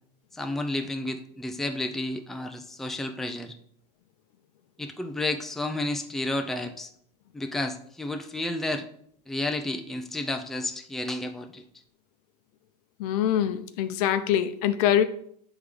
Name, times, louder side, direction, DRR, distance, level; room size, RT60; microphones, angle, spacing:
voice 1, 0.3-3.5 4.8-6.9 7.3-8.8 9.3-11.6, left 2 dB, ahead, 0.5 m, -31 dB
voice 2, 13.0-15.0, left 10 dB, 65° left, 0.7 m, -24 dB
7.8 x 3.7 x 3.4 m
hypercardioid pair, 115°, 21 cm